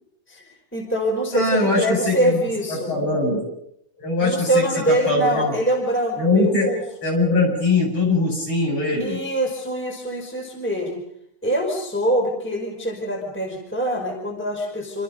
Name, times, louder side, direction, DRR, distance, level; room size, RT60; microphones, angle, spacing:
voice 1, 0.3-2.9 4.2-6.8 8.9-11.0 11.4-15.0, right 1 dB, 5° left, 2 dB, 5.0 m, -24 dB
voice 2, 1.3-2.4 2.7-3.4 4.0-5.5 6.2-6.8 7.0-9.2, left 2 dB, 40° left, 1 dB, 8.1 m, -21 dB
28.5 x 26.5 x 5.3 m, 0.75 s
omnidirectional pair, 3.6 m